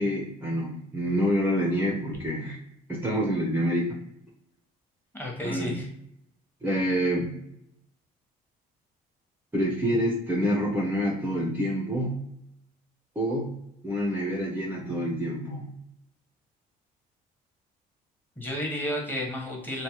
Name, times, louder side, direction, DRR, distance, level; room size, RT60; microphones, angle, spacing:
voice 1, 0.0-2.6 2.9-4.0 5.4-5.8 6.6-7.4 9.5-12.2 13.2-15.7, equal, 10° right, -3 dB, 0.6 m, -27 dB
voice 2, 5.1-5.9 18.4-19.8, left 1 dB, 10° left, -2 dB, 1.0 m, -32 dB
3.2 x 2.1 x 2.8 m, 0.77 s
cardioid pair, 110°, 17 cm